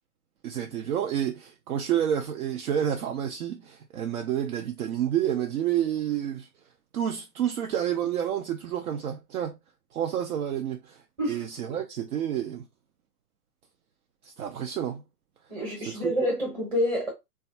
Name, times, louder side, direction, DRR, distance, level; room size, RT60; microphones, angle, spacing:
voice 1, 0.4-6.5 6.9-9.6 9.9-12.7 14.2-15.0 15.8-16.3, right 10 dB, 65° right, 0.6 m, -29 dB
voice 2, 15.5-17.1, equal, 10° right, 0.8 m, -27 dB
3.1 x 2.3 x 2.6 m
hypercardioid pair, 140°, 48 cm